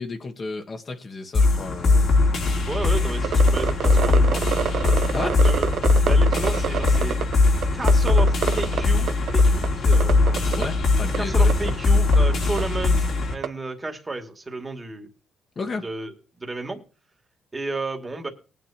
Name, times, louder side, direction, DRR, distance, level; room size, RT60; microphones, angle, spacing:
voice 1, 0.0-2.1 5.1-5.4 10.6-11.7 15.5-15.9, left 3 dB, 40° left, 1.7 m, -32 dB
sound 1, 1.3-13.3, left 3 dB, 60° left, 3.2 m, -20 dB
voice 2, 2.4-4.5 5.1-5.7 6.1-7.2 7.7-10.5 11.1-15.1 15.8-16.8 17.5-18.3, right 3 dB, 25° right, 2.3 m, -32 dB
sound 2, 3.2-7.4 7.6-8.8 9.1-9.7 9.9-10.7 11.1-11.2 11.5-11.7 12.1-12.2 12.6-12.7 13.4-13.5, right 9 dB, 70° right, 0.8 m, -26 dB
19.0 x 9.3 x 2.9 m
cardioid pair, 90°, 0 cm